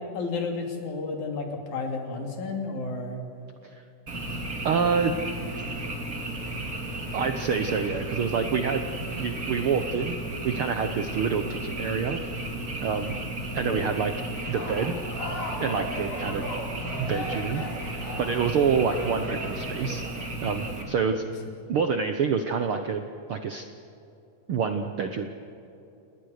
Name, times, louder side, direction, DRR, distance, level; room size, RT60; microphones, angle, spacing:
voice 1, 0.1-3.2 13.4-14.0 21.2-21.6, left 3 dB, 65° left, 2 dB, 4.2 m, -32 dB
Frog, 4.1-20.8, right 1 dB, 30° right, 3.3 m, -34 dB
voice 2, 4.6-5.1 7.1-8.9 9.2-10.1 10.4-12.2 12.8-13.2 13.5-14.1 14.5-14.9 15.6-16.5 17.0-17.6 18.2-20.0 20.4-21.3 21.7-23.0 23.3-23.7 24.5-25.3, right 6 dB, 65° right, 7 dB, 1.3 m, -27 dB
Bowed string instrument, 5.5-9.6, equal, 20° left, 5.9 m, -51 dB
sound 1, 14.5-20.2, left 1 dB, 50° left, 4.4 m, -37 dB
29.0 x 20.0 x 6.6 m, 2.9 s
omnidirectional pair, 3.7 m